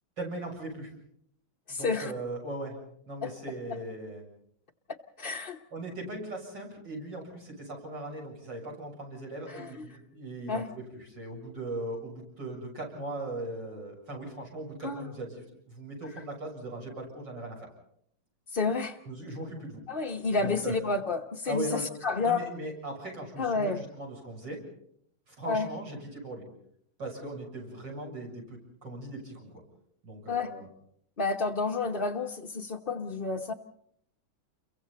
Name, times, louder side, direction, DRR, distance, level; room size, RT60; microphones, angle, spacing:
voice 1, 0.2-0.9 1.7-2.8 3.1-4.2 5.7-17.7 19.0-19.8 20.4-20.7 21.5-21.9 22.2-24.6 25.3-26.5 27.0-29.5 30.0-30.7, right 2 dB, 60° right, 0 dB, 8.1 m, -39 dB
voice 2, 1.7-2.1 3.2-3.3 5.2-5.6 9.5-9.9 10.5-10.7 14.8-15.1 18.5-19.0 19.9-22.4 23.4-23.8 25.5-25.7 30.3-30.5 31.2-33.5, left 4 dB, 35° left, 0 dB, 0.9 m, -30 dB
29.5 x 23.0 x 4.2 m, 0.70 s
omnidirectional pair, 2.2 m